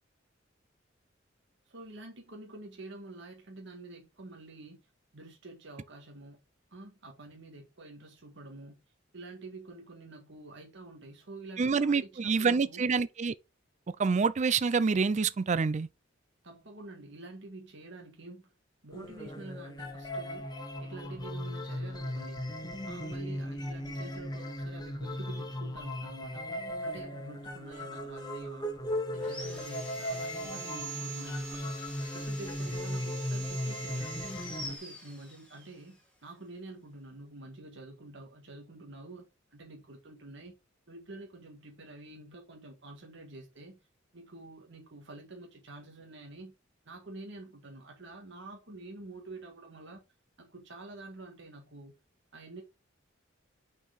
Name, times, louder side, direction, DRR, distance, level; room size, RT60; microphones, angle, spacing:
voice 1, 1.7-4.8 5.1-6.4 6.7-8.8 9.1-12.9 16.4-18.5 18.8-20.5 20.8-22.5 22.9-26.5 26.8-28.7 29.1-31.7 32.1-34.2 34.6-40.5 40.9-43.8 44.1-46.5 46.8-50.0 50.4-52.0 52.3-52.6, right 2 dB, 65° right, 1.7 m, -48 dB
voice 2, 11.6-13.3 14.0-15.9, right 5 dB, 35° right, 0.4 m, -27 dB
sound 1, 18.9-34.8, left 1 dB, 20° left, 1.0 m, -37 dB
Sawing, 29.2-35.7, right 2 dB, 5° left, 2.4 m, -43 dB
5.8 x 4.6 x 4.0 m
head